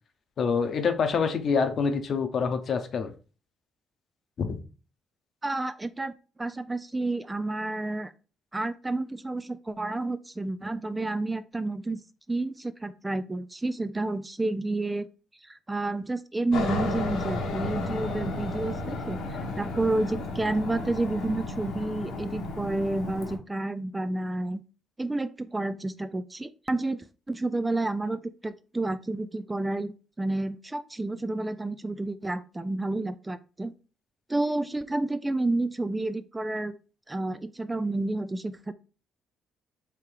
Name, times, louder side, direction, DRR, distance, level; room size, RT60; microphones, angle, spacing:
voice 1, 0.4-3.1 4.4-4.6, left 5 dB, 55° left, 7 dB, 0.9 m, -26 dB
voice 2, 5.4-6.1 6.4-8.1 8.5-12.0 12.3-15.1 15.4-24.6 25.0-33.7 34.3-36.8 37.1-38.7, right 2 dB, 15° right, 13 dB, 0.3 m, -30 dB
Aircraft, 16.5-23.4, left 2 dB, 80° left, 1.2 m, -33 dB
3.4 x 3.2 x 4.7 m, 0.35 s
cardioid pair, 90°, 0 cm